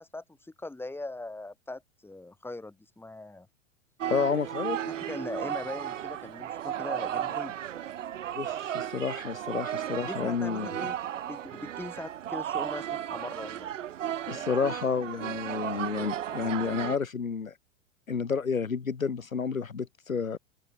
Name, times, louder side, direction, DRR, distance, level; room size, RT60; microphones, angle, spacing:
voice 1, 0.0-3.5 4.8-7.6 10.0-11.0 11.2-13.7, left 2 dB, 5° left, 4.0 m, -40 dB
sound 1, 4.0-17.0, right 11 dB, 65° right, 6.9 m, -35 dB
voice 2, 4.1-4.8 8.4-10.7 14.3-17.5 18.1-20.4, left 5 dB, 85° left, 1.9 m, -30 dB
open air
figure-of-eight pair, 95°, 40 cm